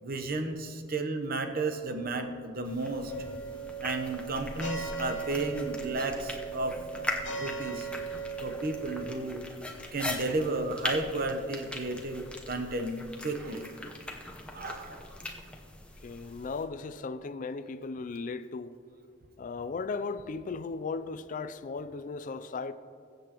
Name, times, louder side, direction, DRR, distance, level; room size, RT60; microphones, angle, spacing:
voice 1, 0.0-3.3 3.8-6.8 7.3-7.9 8.4-9.4 9.9-13.8 14.5-15.0, right 2 dB, 50° right, 0.9 m, -33 dB
sound 1, 2.6-16.6, left 2 dB, 5° left, 0.9 m, -41 dB
sound 2, 3.1-9.1, right 5 dB, 70° left, 1.1 m, -38 dB
voice 2, 16.0-18.8 19.4-22.7, left 4 dB, 45° left, 0.4 m, -36 dB
21.5 x 7.9 x 3.0 m
head